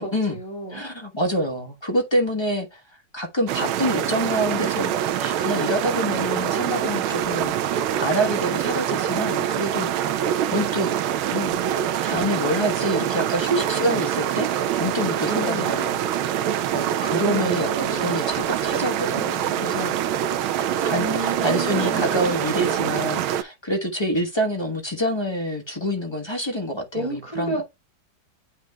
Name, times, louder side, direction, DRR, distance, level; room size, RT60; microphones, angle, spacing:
voice 1, 0.0-0.8 15.2-15.7 16.7-18.2 20.9-22.3 26.9-27.6, right 1 dB, 15° right, 2.0 m, -32 dB
voice 2, 0.7-2.8 3.1-10.9 11.3-11.6 12.0-14.5 14.8-16.0 16.7-20.0 20.8-27.6, equal, 20° left, 0.9 m, -27 dB
sound 1, 3.5-23.4, right 10 dB, 85° right, 1.5 m, -25 dB
8.7 x 5.2 x 2.3 m
omnidirectional pair, 2.2 m